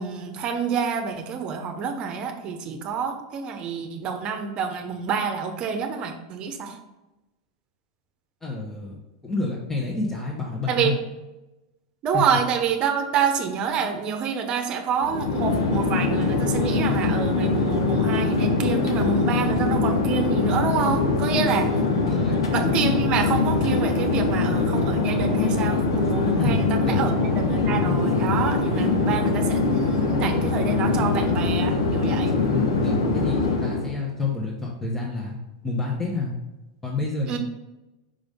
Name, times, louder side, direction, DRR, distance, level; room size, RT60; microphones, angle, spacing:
voice 1, 0.0-6.8 10.7-10.9 12.0-21.7 22.5-32.4 37.3-37.4, right 6 dB, 40° right, 6 dB, 0.8 m, -27 dB
voice 2, 8.4-11.0 12.1-12.2 21.6-21.8 22.1-22.4 26.4-27.0 32.5-35.4 35.6-36.3 36.8-37.4, left 3 dB, 15° left, -3 dB, 1.1 m, -28 dB
Chatter / Fixed-wing aircraft airplane, 15.0-33.9, left 3 dB, 85° left, 0.9 m, -23 dB
5.2 x 5.1 x 3.6 m, 1.0 s
hypercardioid pair, 105°, 2 cm